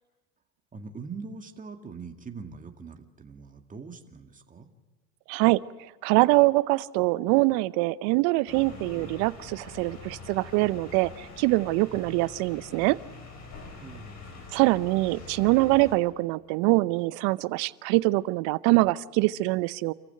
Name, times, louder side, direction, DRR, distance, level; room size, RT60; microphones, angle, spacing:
voice 1, 0.7-4.7 11.9-12.0 13.8-14.5, right 4 dB, 20° right, 5 dB, 2.1 m, -42 dB
voice 2, 5.3-5.6 6.0-13.0 14.5-19.9, right 21 dB, 50° right, 19 dB, 0.7 m, -24 dB
sound 1, 8.5-16.0, left 4 dB, 40° left, 6.7 m, -45 dB
28.0 x 15.0 x 9.0 m, 1.2 s
hypercardioid pair, 90°, 43 cm